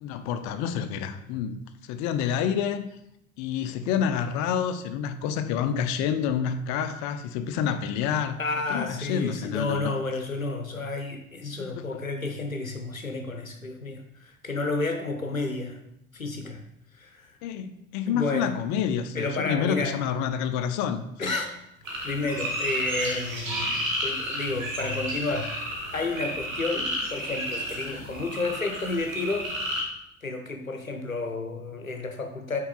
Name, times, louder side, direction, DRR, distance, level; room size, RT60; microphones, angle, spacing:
voice 1, 0.0-2.9 3.4-8.4 8.7-9.9 11.6-12.0 17.4-21.0, left 8 dB, 45° left, 11 dB, 0.6 m, -28 dB
voice 2, 8.4-15.8 16.1-16.6 17.0-17.3 18.1-18.6 19.1-20.0 21.2-21.5 22.0-23.7 24.0-29.5 30.2-32.6, left 3 dB, 90° left, 5 dB, 0.7 m, -31 dB
sound 1, 21.9-29.8, equal, 80° right, 1.5 m, -31 dB
5.8 x 4.6 x 4.0 m, 0.78 s
figure-of-eight pair, 60°, 40 cm